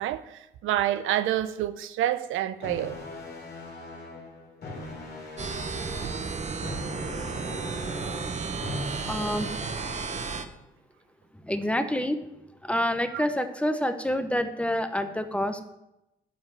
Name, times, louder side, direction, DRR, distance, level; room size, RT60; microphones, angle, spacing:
voice 1, 0.0-3.0 13.1-13.2, right 12 dB, 85° right, 0.6 m, -28 dB
sound 1, 2.6-10.6, left 2 dB, 55° left, 3.3 m, -40 dB
sound 2, 5.4-10.4, right 5 dB, 35° right, 0.9 m, -33 dB
voice 2, 9.1-9.5 11.4-12.2 12.6-15.6, equal, 5° left, 0.9 m, -27 dB
9.3 x 5.6 x 6.7 m
cardioid pair, 90°, 20 cm